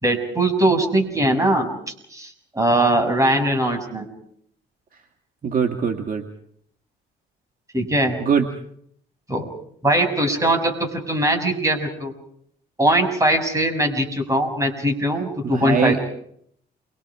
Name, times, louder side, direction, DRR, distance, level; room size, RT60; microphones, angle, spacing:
voice 1, 0.0-1.7 2.1-4.1 7.7-8.2 9.3-9.5 9.8-12.1 12.8-16.0, right 1 dB, 15° right, 4 dB, 6.5 m, -21 dB
voice 2, 5.4-6.2 8.2-8.5 15.5-16.0, right 6 dB, 45° right, 3 dB, 2.1 m, -21 dB
29.0 x 24.0 x 4.9 m, 0.68 s
cardioid pair, 90°, 20 cm